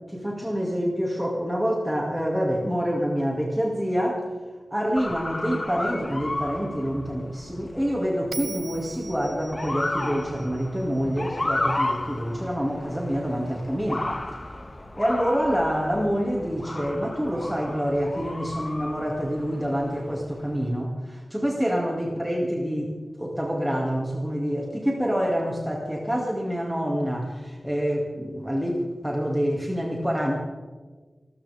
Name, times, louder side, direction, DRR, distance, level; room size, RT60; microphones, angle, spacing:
voice 1, 0.1-4.3 4.7-14.1 15.0-30.4, equal, 5° right, -2 dB, 2.2 m, -27 dB
Motor vehicle (road) / Siren, 5.0-20.5, left 2 dB, 30° left, 1.4 m, -34 dB
Bell, 8.3-11.6, right 3 dB, 70° right, 1.0 m, -41 dB
27.5 x 13.5 x 3.5 m, 1.4 s
wide cardioid pair, 90°, 0 cm